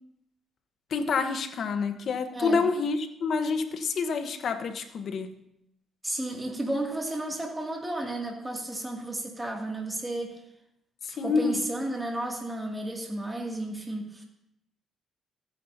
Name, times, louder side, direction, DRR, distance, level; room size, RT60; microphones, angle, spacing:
voice 1, 0.9-5.4 11.0-11.6, left 4 dB, 60° left, 8 dB, 1.0 m, -28 dB
voice 2, 2.3-2.6 6.0-10.4 11.1-14.2, right 1 dB, 15° right, 0 dB, 2.4 m, -33 dB
15.0 x 9.4 x 2.7 m, 0.80 s
cardioid pair, 90°, 0 cm